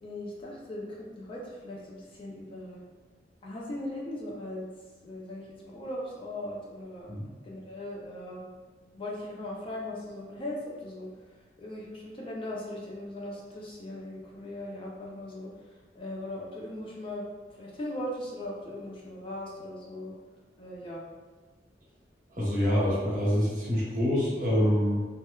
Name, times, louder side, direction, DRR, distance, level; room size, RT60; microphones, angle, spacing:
voice 1, 0.0-2.8 3.4-4.7 5.0-7.2 7.4-8.6 8.9-11.1 11.6-15.5 15.9-17.2 17.5-20.1 20.6-21.0, left 1 dB, 30° left, -3 dB, 0.4 m, -39 dB
voice 2, 22.3-25.0, equal, 50° right, -7 dB, 0.9 m, -26 dB
2.9 x 2.1 x 2.2 m, 1.4 s
head